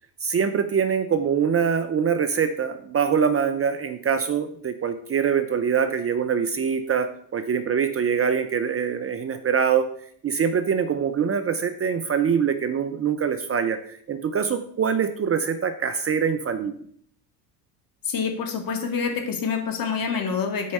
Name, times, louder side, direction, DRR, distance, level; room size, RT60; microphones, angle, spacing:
voice 1, 0.2-9.9 10.2-13.8 14.1-16.7, right 7 dB, 30° right, 9 dB, 0.7 m, -24 dB
voice 2, 18.1-20.7, left 6 dB, 45° left, 4 dB, 2.1 m, -27 dB
8.4 x 4.7 x 5.5 m, 0.62 s
supercardioid pair, 80°, 47 cm